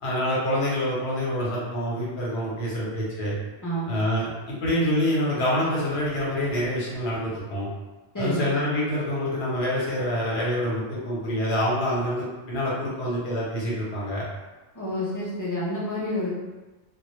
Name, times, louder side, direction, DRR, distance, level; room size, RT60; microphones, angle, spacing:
voice 1, 0.0-3.3 3.9-7.7 8.2-14.2, equal, 75° left, -6 dB, 1.0 m, -26 dB
voice 2, 8.1-8.5 14.7-16.4, equal, 25° left, -8 dB, 0.4 m, -28 dB
2.1 x 2.1 x 2.9 m, 1.2 s
omnidirectional pair, 1.1 m